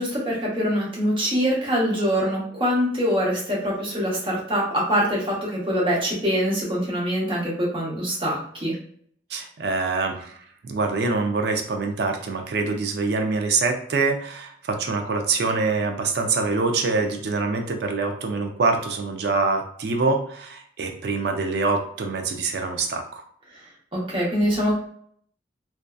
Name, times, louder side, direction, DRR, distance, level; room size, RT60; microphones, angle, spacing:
voice 1, 0.0-8.7 23.9-24.7, equal, 25° right, -4 dB, 0.7 m, -24 dB
voice 2, 9.3-10.4 10.6-23.2, right 3 dB, 55° right, 4 dB, 0.4 m, -25 dB
2.6 x 2.3 x 2.2 m, 0.62 s
head